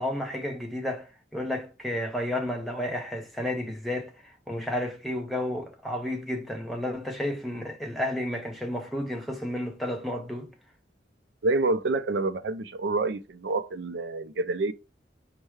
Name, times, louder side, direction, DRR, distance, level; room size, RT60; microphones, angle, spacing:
voice 1, 0.0-10.5, left 1 dB, ahead, 0.7 m, -32 dB
voice 2, 11.4-14.7, right 3 dB, 80° right, 0.4 m, -27 dB
4.5 x 2.2 x 4.7 m
head